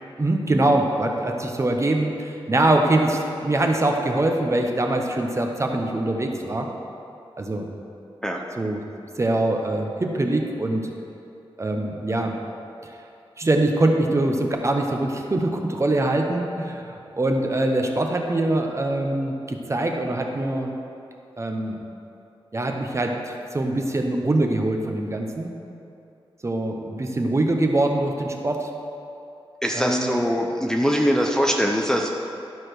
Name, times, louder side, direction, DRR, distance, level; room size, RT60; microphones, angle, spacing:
voice 1, 0.2-6.7 7.4-7.7 8.6-8.8 9.2-10.9 11.6-12.3 12.8-12.9 13.4-20.7 21.4-21.8 22.5-25.5 26.4-28.7 29.7-30.1, right 2 dB, 30° right, 2 dB, 0.9 m, -23 dB
voice 2, 29.6-32.1, equal, 5° left, 0 dB, 0.6 m, -22 dB
12.0 x 5.0 x 6.1 m, 2.7 s
wide cardioid pair, 125°, 10 cm